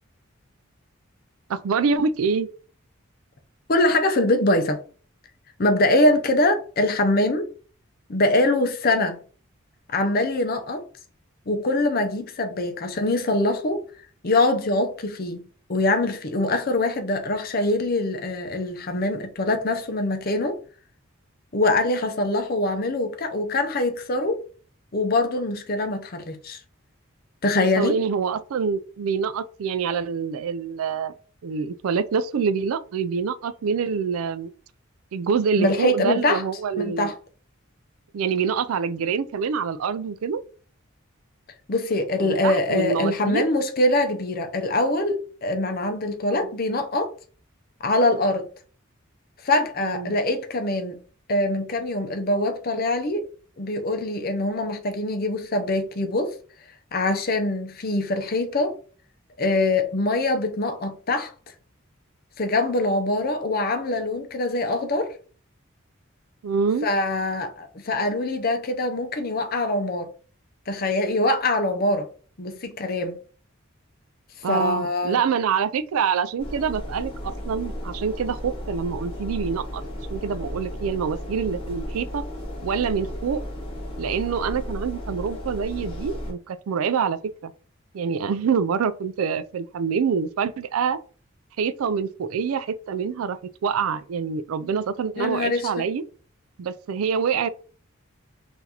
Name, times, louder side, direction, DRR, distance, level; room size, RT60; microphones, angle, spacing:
voice 1, 1.5-2.5 27.6-31.1 31.4-34.5 35.1-37.1 38.1-40.4 42.2-43.5 46.3-46.6 49.8-50.2 66.4-66.9 74.4-79.8 80.1-82.2 82.6-83.4 84.0-87.5 87.9-91.0 91.6-96.0 96.6-97.5, right 6 dB, 85° right, 0.4 m, -26 dB
voice 2, 3.7-4.8 5.6-7.5 8.1-9.2 9.9-10.8 11.5-13.8 14.2-15.4 15.7-20.6 21.5-24.4 24.9-26.6 27.4-28.0 35.6-36.4 36.8-37.2 41.7-47.1 47.8-48.5 49.4-51.0 51.3-53.3 53.6-56.4 56.9-58.7 59.4-61.3 62.4-65.1 66.8-70.1 70.7-72.1 72.4-73.2 74.5-75.2 95.2-95.9, left 2 dB, 45° left, 0.6 m, -23 dB
sound 1, 76.4-86.3, equal, 25° left, 1.2 m, -34 dB
5.6 x 2.6 x 2.9 m
head